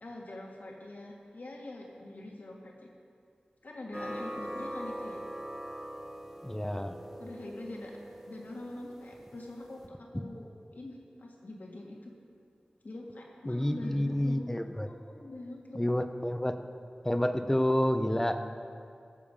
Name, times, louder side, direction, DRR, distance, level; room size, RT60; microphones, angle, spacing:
voice 1, 0.0-2.9 3.6-5.2 7.2-8.0 8.3-12.1 12.8-14.5 14.9-15.8, left 2 dB, 70° left, -1 dB, 1.8 m, -44 dB
sound 1, 3.9-9.9, right 1 dB, 10° right, 1.1 m, -42 dB
voice 2, 6.4-6.9 13.5-14.9 15.7-16.6 17.0-18.4, left 1 dB, 15° left, 8 dB, 0.7 m, -29 dB
13.5 x 7.1 x 5.3 m, 2.4 s
wide cardioid pair, 60°, 3 cm